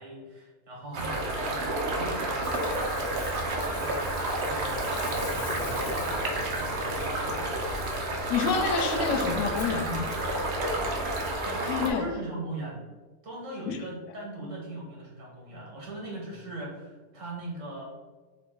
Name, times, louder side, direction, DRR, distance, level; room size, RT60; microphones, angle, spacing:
voice 1, 0.0-4.1 4.4-7.9 11.5-12.8 13.2-17.8, right 2 dB, 80° right, -3 dB, 1.9 m, -40 dB
sound 1, 0.9-11.9, right 1 dB, 60° right, 1.0 m, -30 dB
Ocean, 2.4-11.3, left 2 dB, 50° left, 0.8 m, -43 dB
voice 2, 8.3-10.2 11.5-12.1 13.7-13.8, left 5 dB, 80° left, 4 dB, 1.0 m, -28 dB
6.0 x 2.4 x 3.7 m, 1.3 s
omnidirectional pair, 1.3 m